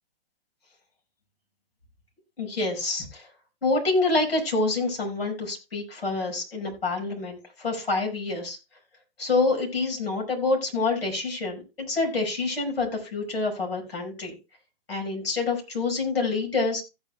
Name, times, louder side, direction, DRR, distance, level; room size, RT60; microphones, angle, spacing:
voice 1, 2.4-3.3 3.6-8.6 9.2-14.4 14.9-16.8, left 3 dB, 90° left, 0 dB, 5.8 m, -27 dB
16.0 x 8.9 x 2.3 m, 0.28 s
hypercardioid pair, 120°, 29 cm